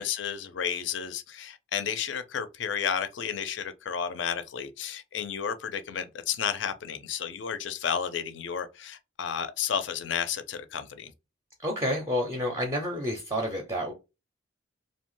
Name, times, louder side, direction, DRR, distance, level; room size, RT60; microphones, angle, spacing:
voice 1, 0.0-11.1, left 7 dB, 65° left, 0.4 m, -32 dB
voice 2, 11.6-13.9, equal, 15° right, 0.4 m, -29 dB
2.7 x 2.1 x 3.0 m
head